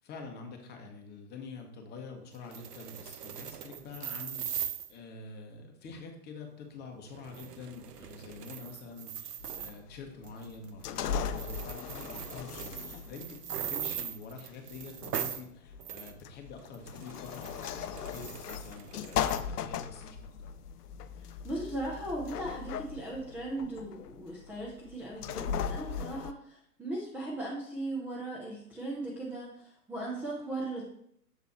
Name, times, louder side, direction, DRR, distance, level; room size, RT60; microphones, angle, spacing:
voice 1, 0.0-20.5, left 4 dB, 20° left, 2 dB, 1.1 m, -46 dB
sound 1, 2.3-4.9 7.1-9.8 10.2-10.7 11.0-11.1 11.3-15.5 15.8-16.1 16.6-19.4, right 9 dB, 80° right, 0.7 m, -40 dB
sound 2, 9.4-26.3, left 8 dB, 75° left, 0.6 m, -38 dB
voice 2, 21.4-30.8, right 2 dB, 5° right, -4 dB, 0.5 m, -38 dB
7.1 x 4.0 x 4.2 m, 0.72 s
hypercardioid pair, 125°, 47 cm